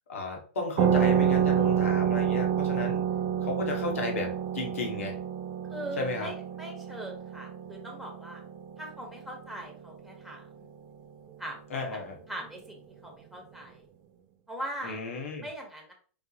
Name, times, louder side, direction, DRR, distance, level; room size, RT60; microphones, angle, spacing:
voice 1, 0.1-3.0 3.4-5.2 6.0-6.3 11.7-12.2 14.8-15.5, left 3 dB, 90° left, 1 dB, 1.5 m, -33 dB
sound 1, 0.8-10.0, right 9 dB, 35° right, 0.5 m, -28 dB
voice 2, 5.7-8.4 8.8-10.7 11.4-11.6 12.3-13.8 14.5-15.0 15.4-15.9, right 1 dB, ahead, 1 dB, 1.2 m, -40 dB
4.7 x 3.6 x 2.9 m, 0.43 s
supercardioid pair, 145°, 7 cm